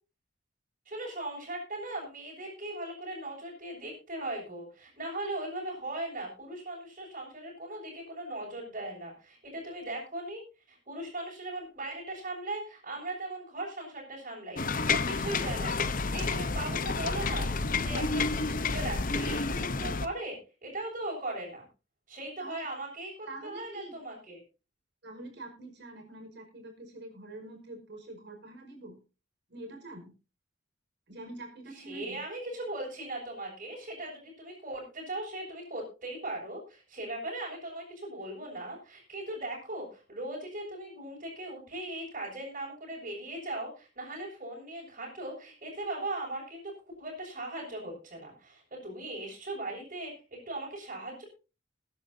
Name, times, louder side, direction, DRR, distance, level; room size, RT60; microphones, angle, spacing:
voice 1, 0.8-10.4 10.7-21.7 22.1-24.4 31.7-46.7 47.0-51.2, right 1 dB, 45° right, -6 dB, 6.6 m, -39 dB
sound 1, 14.6-20.1, left 4 dB, 50° left, 0.9 m, -30 dB
voice 2, 23.3-23.9 25.0-29.0 29.5-30.1 31.1-32.2, right 2 dB, 65° right, 2 dB, 5.2 m, -45 dB
22.0 x 10.5 x 2.8 m, 0.32 s
head